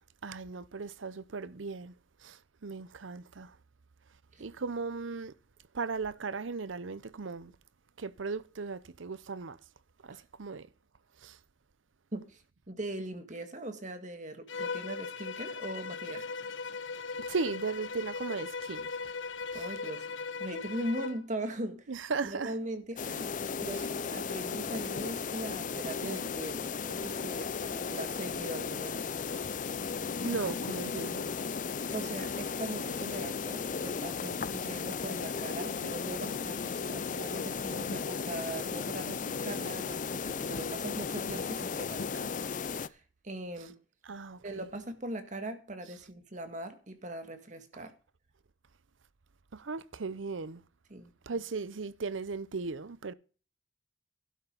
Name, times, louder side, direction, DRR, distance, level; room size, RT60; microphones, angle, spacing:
voice 1, 0.2-1.9 2.2-3.6 4.4-5.3 5.7-7.5 8.0-9.6 10.0-10.7 11.2-11.4 17.2-18.9 19.5-19.7 21.9-22.5 30.0-31.3 44.1-44.6 49.5-50.6 51.3-53.1, right 4 dB, 90° right, 0.7 m, -37 dB
voice 2, 12.1-12.4 12.7-16.3 19.5-20.1 20.4-21.9 22.2-29.1 31.9-42.3 42.6-43.8 44.4-47.9 50.9-51.1, right 1 dB, 40° right, 1.9 m, -40 dB
Bowed string instrument, 14.5-21.2, left 4 dB, 80° left, 1.2 m, -38 dB
sound 1, 23.0-42.9, left 5 dB, 45° left, 0.5 m, -35 dB
12.0 x 8.1 x 5.4 m
head